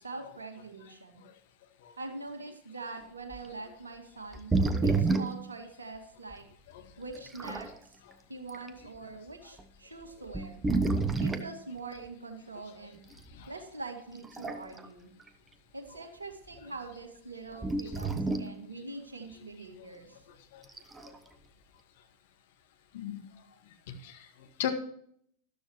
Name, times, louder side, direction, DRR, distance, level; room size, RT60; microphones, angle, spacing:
voice 1, 0.0-1.2 2.0-6.5 7.0-8.0 8.3-10.6 11.2-13.0 13.5-15.1 15.7-20.2, right 3 dB, 75° right, 5 dB, 2.0 m, -43 dB
sound 1, 3.3-3.5 4.3-5.5 6.3-6.4 7.1-7.7 8.5-8.7 9.6-9.7 10.3-11.5 13.2-13.3 14.1-14.9 15.2-15.3 17.6-18.6 20.6-21.2, right 3 dB, 15° right, 1.0 m, -29 dB
voice 2, 22.9-23.3 23.9-24.7, left 10 dB, 55° left, 6 dB, 1.8 m, -38 dB
13.5 x 12.0 x 3.0 m, 0.64 s
figure-of-eight pair, 90°, 0 cm